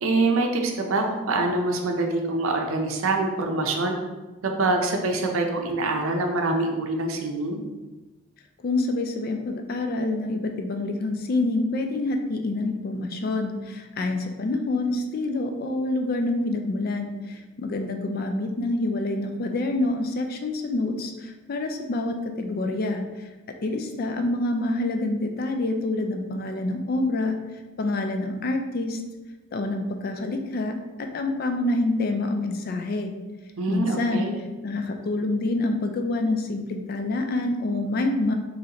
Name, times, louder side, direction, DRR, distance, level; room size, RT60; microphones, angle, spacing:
voice 1, 0.0-4.0 4.6-7.6 33.6-34.4, right 2 dB, 75° right, 2 dB, 0.6 m, -25 dB
voice 2, 8.6-23.3 23.6-27.4 27.8-29.0 29.5-33.1 33.7-34.3 34.6-38.3, left 2 dB, 45° left, 5 dB, 0.3 m, -27 dB
3.8 x 3.1 x 2.8 m, 1.2 s
head